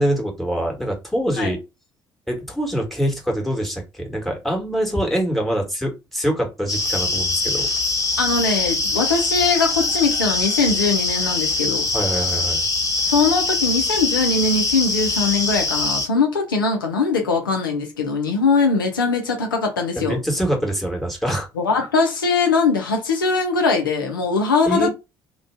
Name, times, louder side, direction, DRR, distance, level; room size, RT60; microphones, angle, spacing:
voice 1, 0.0-1.6 2.3-7.7 11.9-12.6 19.9-21.5 24.7-24.9, right 1 dB, ahead, 1.3 m, -24 dB
sound 1, 6.7-16.1, left 3 dB, 30° left, 1.1 m, -23 dB
voice 2, 8.2-11.9 13.0-20.2 21.6-24.9, left 4 dB, 80° left, 0.6 m, -21 dB
2.5 x 2.2 x 3.3 m
figure-of-eight pair, 50°, 11 cm